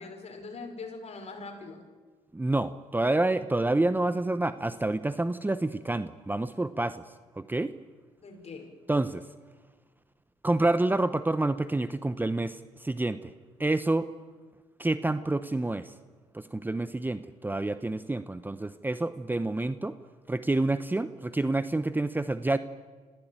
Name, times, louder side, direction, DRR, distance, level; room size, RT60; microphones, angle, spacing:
voice 1, 0.0-1.8 8.2-8.8, left 3 dB, 50° left, 4 dB, 5.4 m, -42 dB
voice 2, 2.3-7.0 7.4-7.7 8.9-9.2 10.4-13.3 13.6-14.1 14.8-15.9 16.3-19.9 20.3-22.6, right 2 dB, 15° right, 13 dB, 0.9 m, -28 dB
26.0 x 15.5 x 9.0 m, 1.4 s
supercardioid pair, 70°, 14 cm